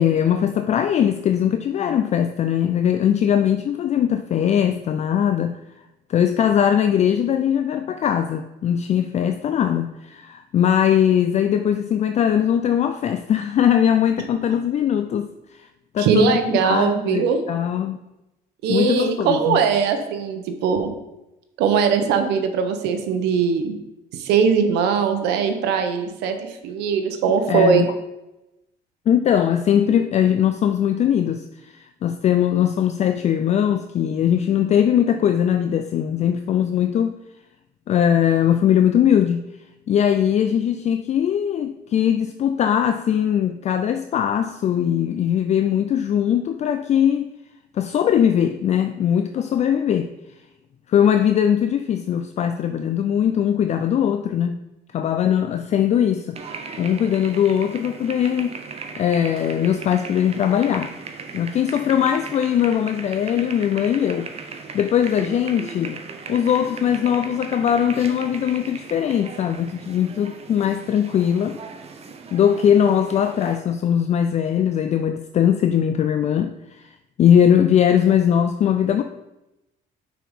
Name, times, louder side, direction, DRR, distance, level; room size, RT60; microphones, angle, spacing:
voice 1, 0.0-5.6 6.1-15.3 15.9-18.0 18.7-19.6 27.5-27.9 29.1-37.2 37.9-39.4 39.9-47.3 47.7-50.1 50.9-54.6 54.9-56.4 56.8-58.6 59.0-60.9 61.3-64.3 64.7-66.0 66.3-71.6 72.3-76.8 77.2-79.0, left 9 dB, 40° left, 0.4 m, -20 dB
voice 2, 16.0-17.4 18.6-20.9 21.6-23.7 24.1-27.8, right 6 dB, 85° right, 0.9 m, -20 dB
sound 1, 56.4-73.6, right 5 dB, 40° right, 0.8 m, -37 dB
6.0 x 4.7 x 5.2 m
cardioid pair, 110°, 17 cm